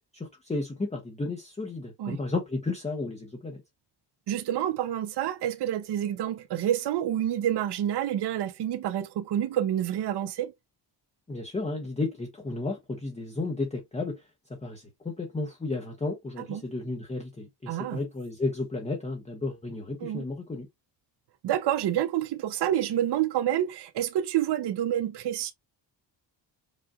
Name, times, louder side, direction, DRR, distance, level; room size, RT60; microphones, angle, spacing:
voice 1, 0.1-3.6 11.3-14.2 14.6-20.7, left 3 dB, 15° left, 0.9 m, -33 dB
voice 2, 4.3-10.5 16.4-16.6 17.7-18.0 20.0-20.2 21.4-25.5, right 11 dB, 60° right, 0.6 m, -28 dB
5.1 x 2.5 x 2.3 m
cardioid pair, 125°, 45 cm